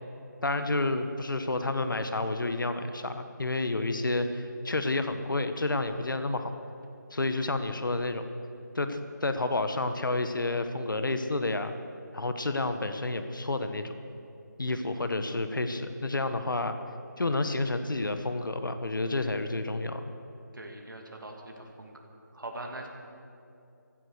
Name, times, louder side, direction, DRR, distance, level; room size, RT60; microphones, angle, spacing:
voice 1, 0.4-6.6 7.1-8.2 8.7-11.7 12.1-13.9 14.6-16.8 17.2-20.1, left 2 dB, 90° left, 9 dB, 1.2 m, -30 dB
voice 2, 20.5-21.9 22.3-22.9, right 2 dB, 85° right, 1 dB, 2.6 m, -42 dB
15.5 x 13.0 x 6.6 m, 2.7 s
figure-of-eight pair, 175°, 10 cm